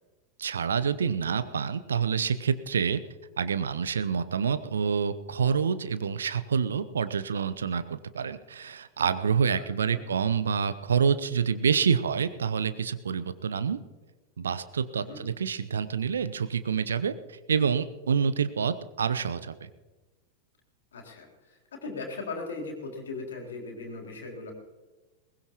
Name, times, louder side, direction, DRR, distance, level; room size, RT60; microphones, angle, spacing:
voice 1, 0.4-3.0 3.4-13.8 14.4-19.7, right 6 dB, 70° right, 13 dB, 0.8 m, -27 dB
voice 2, 9.6-10.0 15.0-15.2 20.9-24.5, left 3 dB, 65° left, 1 dB, 3.6 m, -39 dB
21.5 x 19.5 x 3.0 m, 1.2 s
figure-of-eight pair, 90°, 0 cm